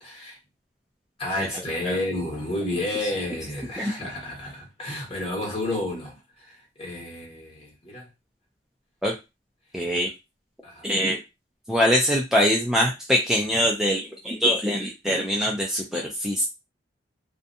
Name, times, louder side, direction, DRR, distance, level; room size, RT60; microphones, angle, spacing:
voice 1, 0.0-0.4 1.2-8.1 9.9-10.0 10.6-10.9, left 1 dB, 30° left, 1.2 m, -31 dB
voice 2, 9.7-10.1 10.8-11.2 11.7-16.4, equal, 5° right, 0.4 m, -23 dB
2.6 x 2.2 x 2.6 m
head